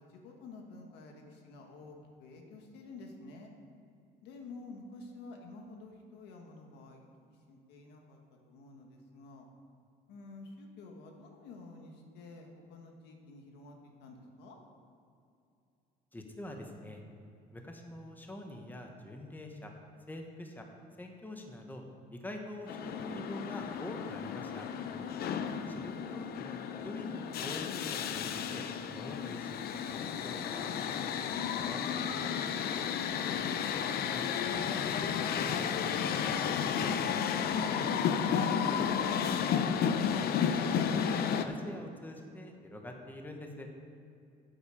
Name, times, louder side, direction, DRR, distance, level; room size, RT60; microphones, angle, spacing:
voice 1, 0.0-3.5 4.2-7.0 7.5-8.2 8.5-9.5 10.1-14.6 25.4-25.8, left 3 dB, 90° left, 2 dB, 1.8 m, -50 dB
voice 2, 16.1-17.0 17.5-19.7 20.1-20.7 21.0-21.8 22.1-24.7 25.7-28.6 28.9-32.9 34.1-34.7 35.0-37.9 38.6-43.7, left 1 dB, 10° left, 2 dB, 1.4 m, -45 dB
sound 1, 22.7-41.4, left 7 dB, 65° left, 0.7 m, -32 dB
11.5 x 8.8 x 5.1 m, 2.5 s
cardioid pair, 110°, 17 cm